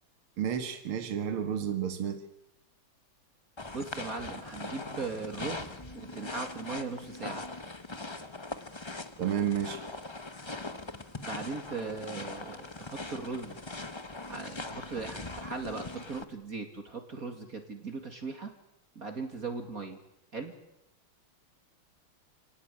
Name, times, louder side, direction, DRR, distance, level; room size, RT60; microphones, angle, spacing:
voice 1, 0.4-2.2 9.2-9.8, right 9 dB, 75° right, 8 dB, 2.6 m, -31 dB
sound 1, 3.6-16.2, left 2 dB, 20° left, 0.7 m, -41 dB
voice 2, 3.7-7.5 11.2-13.6 14.3-18.5 19.0-20.0 20.3-20.5, right 4 dB, 40° right, 5 dB, 2.8 m, -39 dB
29.0 x 18.0 x 10.0 m, 0.87 s
omnidirectional pair, 2.4 m